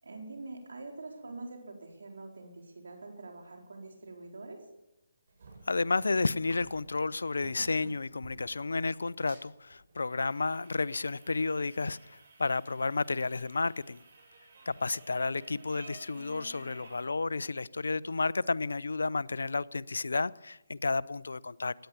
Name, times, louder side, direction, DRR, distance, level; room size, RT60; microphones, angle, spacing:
voice 1, 0.0-4.6, right 3 dB, 80° right, 4.3 m, -45 dB
sound 1, 5.3-17.0, right 3 dB, 55° right, 7.4 m, -53 dB
voice 2, 5.7-14.0 14.7-21.7, left 3 dB, 85° left, 0.5 m, -31 dB
17.0 x 10.0 x 7.1 m
hypercardioid pair, 155°, 0 cm